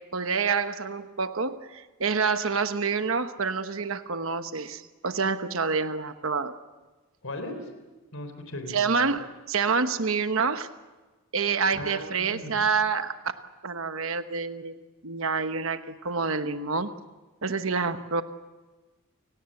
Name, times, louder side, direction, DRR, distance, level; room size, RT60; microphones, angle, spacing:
voice 1, 0.1-6.5 8.7-10.7 11.3-13.3 13.6-14.8 15.0-16.9 17.4-18.2, right 5 dB, 65° right, 9 dB, 1.1 m, -27 dB
voice 2, 7.2-7.7 8.1-8.8 11.7-12.6, left 1 dB, 70° left, 7 dB, 3.7 m, -37 dB
29.5 x 18.0 x 7.8 m, 1.2 s
head